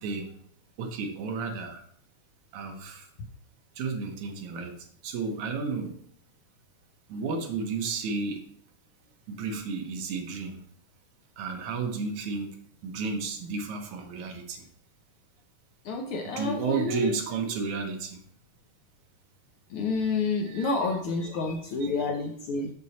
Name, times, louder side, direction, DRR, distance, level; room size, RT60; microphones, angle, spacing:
voice 1, 0.0-0.3 0.8-1.8 2.5-3.1 3.8-6.0 7.1-8.5 9.3-10.6 11.4-12.6 12.8-14.7 16.3-18.2 20.5-20.8 21.4-22.1, right 4 dB, 75° right, 4 dB, 2.4 m, -33 dB
voice 2, 15.8-17.1 19.7-22.7, left 3 dB, 85° left, 3 dB, 1.2 m, -29 dB
6.8 x 6.3 x 4.1 m, 0.65 s
omnidirectional pair, 3.5 m